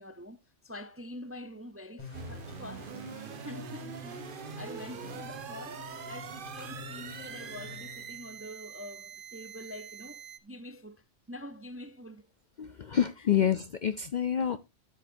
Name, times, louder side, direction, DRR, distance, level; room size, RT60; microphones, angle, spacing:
voice 1, 0.0-12.2 13.2-13.3 14.4-14.6, left 1 dB, 20° right, 0.4 m, -46 dB
sound 1, 2.0-8.5, left 2 dB, 35° left, 6.7 m, -47 dB
sound 2, 2.1-10.4, right 7 dB, 50° right, 0.8 m, -44 dB
voice 2, 12.6-14.6, left 9 dB, 55° left, 0.5 m, -28 dB
13.0 x 7.3 x 2.6 m
omnidirectional pair, 1.3 m